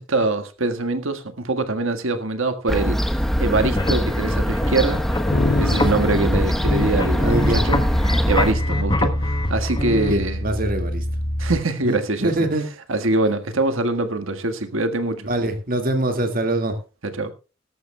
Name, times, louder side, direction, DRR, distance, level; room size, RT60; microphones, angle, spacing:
voice 1, 0.0-3.0 3.4-5.0 5.6-7.8 8.3-10.4 11.4-12.3 12.9-15.3 17.0-17.3, right 2 dB, 75° right, 1.6 m, -23 dB
Fowl / Gull seagull, 2.7-8.5, equal, ahead, 0.9 m, -23 dB
sound 1, 3.4-10.1, left 2 dB, 20° left, 1.2 m, -26 dB
sound 2, 5.3-11.6, equal, 70° left, 2.0 m, -26 dB
voice 2, 7.2-7.6 10.0-11.1 11.8-12.7 15.2-16.8, right 1 dB, 40° right, 2.0 m, -24 dB
18.5 x 13.5 x 2.2 m
head